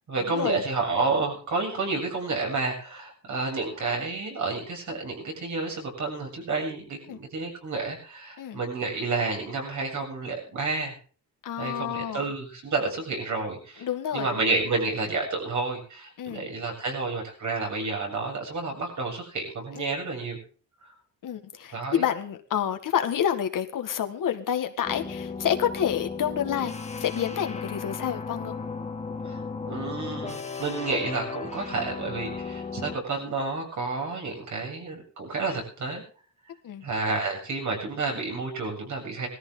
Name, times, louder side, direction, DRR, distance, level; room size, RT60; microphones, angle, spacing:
voice 1, 0.1-10.9 11.6-13.9 14.1-20.4 20.8-20.9 21.7-22.0 29.2-36.0 36.8-39.3, right 3 dB, 60° right, 1 dB, 7.6 m, -30 dB
voice 2, 11.4-12.2 13.8-14.3 16.2-16.5 19.8-20.0 21.2-26.7 27.0-28.6 36.6-36.9, left 9 dB, 70° left, 6 dB, 1.8 m, -28 dB
sound 1, 24.8-33.0, left 5 dB, 20° left, 1.4 m, -35 dB
19.5 x 14.0 x 3.8 m, 0.40 s
cardioid pair, 125°, 34 cm